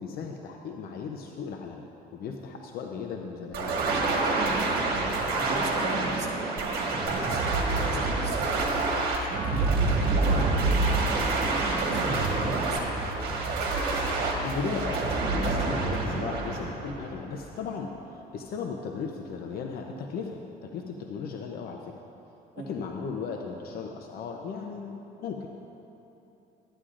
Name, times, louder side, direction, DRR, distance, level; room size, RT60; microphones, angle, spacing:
voice 1, 0.0-1.9 2.1-3.8 14.4-21.9 22.6-25.5, left 5 dB, 65° left, 2 dB, 0.6 m, -36 dB
sound 1, 3.5-17.4, right 3 dB, 70° right, 1.5 m, -27 dB
voice 2, 4.7-6.5 6.9-8.9 9.2-10.9 11.1-13.3 22.6-22.7, right 2 dB, 40° right, -2 dB, 1.6 m, -39 dB
sound 2, 7.2-15.9, right 1 dB, 15° left, 1.5 m, -40 dB
13.0 x 9.9 x 2.5 m, 3.0 s
cardioid pair, 110°, 17 cm